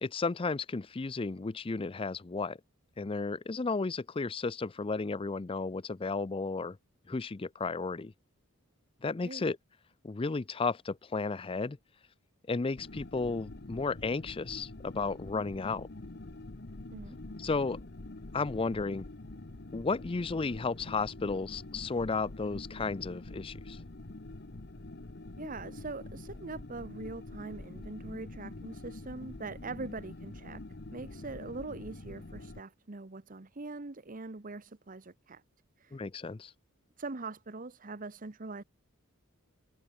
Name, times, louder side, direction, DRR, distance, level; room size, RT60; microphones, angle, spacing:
voice 1, 0.0-2.6 3.0-6.8 7.1-8.1 9.0-9.6 10.0-11.8 12.5-15.9 17.4-17.8 18.3-19.0 19.7-23.8 35.9-36.5, left 4 dB, 25° left, 0.4 m, -33 dB
sound 1, 12.8-32.6, left 2 dB, 50° left, 1.1 m, -46 dB
voice 2, 25.4-30.6 30.9-35.4 35.8-36.0 37.0-38.6, right 3 dB, 40° right, 1.0 m, -42 dB
head